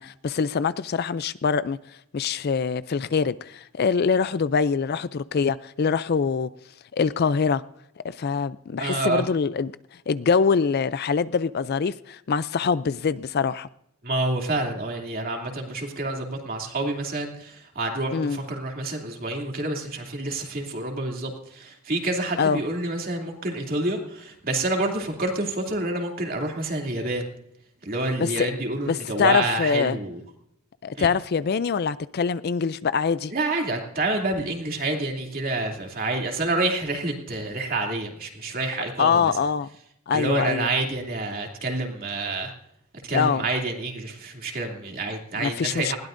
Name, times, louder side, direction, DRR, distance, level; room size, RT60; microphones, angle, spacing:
voice 1, 0.0-1.8 2.1-6.5 6.9-7.6 8.0-9.7 10.1-13.7 18.1-18.4 22.4-22.6 28.2-28.5 28.9-30.0 30.8-33.3 39.0-39.7 40.1-40.7 43.1-43.5 45.4-45.9, left 5 dB, 45° left, 0.4 m, -24 dB
voice 2, 8.8-9.2 14.0-27.3 27.8-30.2 31.0-31.1 33.3-39.3 40.1-42.5 43.1-46.0, right 2 dB, 40° right, 2.7 m, -28 dB
20.5 x 16.5 x 2.6 m
head